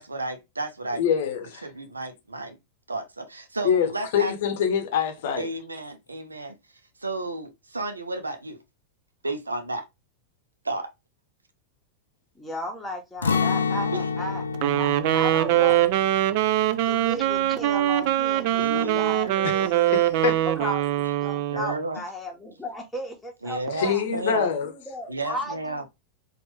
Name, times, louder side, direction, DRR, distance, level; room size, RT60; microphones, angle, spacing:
voice 1, 0.0-1.0 1.6-2.6 2.9-4.3 5.4-6.6 7.0-8.6 9.2-9.8 10.6-10.9 18.6-19.7 20.1-20.7 21.5-22.0 23.4-24.5 25.1-25.8, right 2 dB, 80° right, 0.7 m, -32 dB
voice 2, 1.0-1.7 3.6-5.5 19.4-19.6 19.9-20.4 23.7-24.7, left 8 dB, 55° left, 0.7 m, -25 dB
voice 3, 12.3-14.4 14.7-15.8 16.8-20.0 20.4-24.0 24.6-25.9, equal, 5° left, 1.3 m, -35 dB
Acoustic guitar, 13.2-19.1 19.4-19.6 20.1-20.6, left 5 dB, 75° left, 0.4 m, -30 dB
Wind instrument woodwind instrument, 14.5-21.8, right 13 dB, 45° right, 0.3 m, -23 dB
4.3 x 2.5 x 3.0 m
figure-of-eight pair, 90°, 0 cm